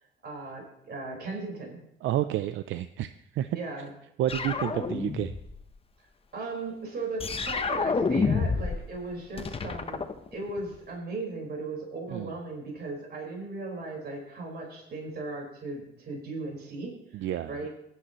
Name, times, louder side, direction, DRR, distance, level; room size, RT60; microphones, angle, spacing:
voice 1, 0.2-1.8 3.5-3.9 6.3-17.2 17.5-17.7, right 3 dB, 55° right, -1 dB, 4.6 m, -37 dB
voice 2, 2.0-3.6 4.2-5.4 12.1-12.3 17.1-17.7, right 12 dB, 80° right, 11 dB, 0.5 m, -30 dB
sound 1, 4.3-5.6 7.2-8.9 9.1-10.8, left 4 dB, 30° left, 0.9 m, -29 dB
17.5 x 10.5 x 3.0 m, 0.77 s
cardioid pair, 90°, 20 cm